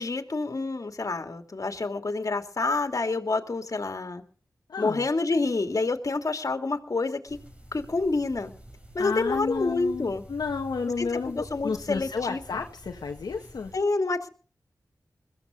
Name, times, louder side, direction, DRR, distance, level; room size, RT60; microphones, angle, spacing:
voice 1, 0.0-4.2 4.8-7.4 7.7-8.5 8.9-10.2 11.0-11.1 11.3-12.6 13.7-14.3, left 3 dB, 55° left, 6 dB, 2.8 m, -28 dB
voice 2, 4.7-5.0 9.0-13.7, left 5 dB, 80° left, 1 dB, 1.6 m, -31 dB
sound 1, 7.3-13.8, right 1 dB, 20° right, 6.7 m, -48 dB
22.0 x 15.0 x 4.0 m, 0.40 s
cardioid pair, 45°, 7 cm